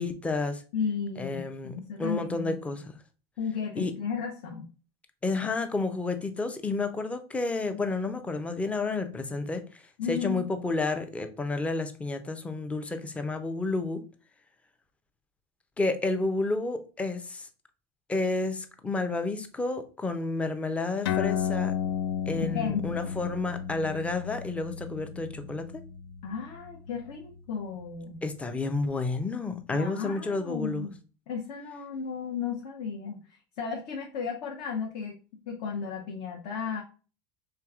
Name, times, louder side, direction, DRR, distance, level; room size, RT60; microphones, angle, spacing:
voice 1, 0.0-0.6 1.2-2.9 3.8-3.9 5.2-9.8 10.1-14.0 15.8-17.5 18.1-21.7 22.3-25.7 28.2-30.9, left 3 dB, 10° left, 8 dB, 0.5 m, -30 dB
voice 2, 0.7-2.6 3.4-4.7 10.0-10.4 22.4-23.1 26.2-28.2 29.7-30.9 31.3-33.2 33.6-35.2 35.5-36.8, left 6 dB, 60° left, 0 dB, 0.8 m, -34 dB
sound 1, 21.0-28.0, left 9 dB, 85° left, 0.5 m, -33 dB
4.5 x 3.4 x 2.4 m, 0.36 s
supercardioid pair, 140°, 12 cm